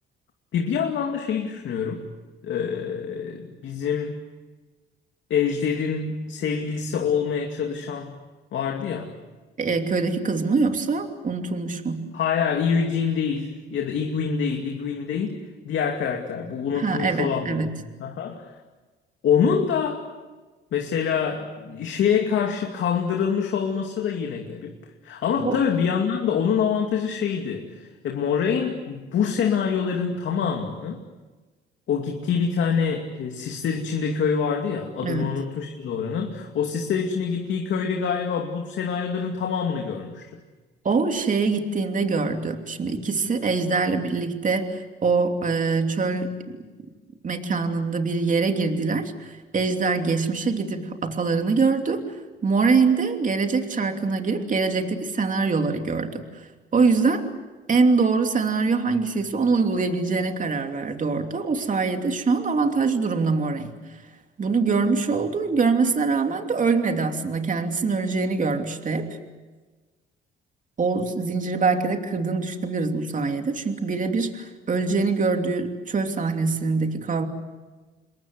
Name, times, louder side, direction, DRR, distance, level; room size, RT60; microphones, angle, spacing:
voice 1, 0.5-2.1 2.4-4.2 5.3-8.2 8.5-9.1 12.1-17.7 18.0-18.5 19.2-20.0 20.7-24.8 25.0-31.0 31.9-40.3, left 6 dB, 70° left, 2 dB, 2.6 m, -25 dB
voice 2, 9.6-12.1 16.7-17.7 25.3-25.6 35.0-35.4 40.8-46.6 47.2-52.1 52.4-56.3 56.7-57.3 57.7-63.7 64.4-69.2 70.8-77.3, right 4 dB, 40° right, 5 dB, 3.0 m, -24 dB
28.0 x 22.0 x 8.1 m, 1.3 s
cardioid pair, 90°, 20 cm